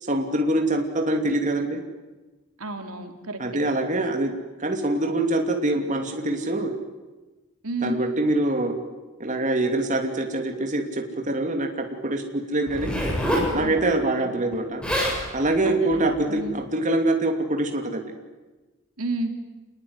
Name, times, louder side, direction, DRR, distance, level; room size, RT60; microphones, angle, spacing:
voice 1, 0.0-1.8 3.4-4.3 4.6-6.7 7.8-8.8 9.2-12.9 13.5-14.8 15.3-18.0, right 2 dB, 35° right, 4 dB, 2.9 m, -24 dB
voice 2, 2.6-3.4 7.6-8.0 13.6-14.3 15.6-16.6 19.0-19.3, right 2 dB, 85° right, 5 dB, 3.4 m, -32 dB
Zipper (clothing), 12.7-13.5 14.5-14.6 14.8-15.2 15.9-16.1, equal, 5° left, 7.3 m, -25 dB
28.0 x 21.5 x 9.8 m, 1.2 s
head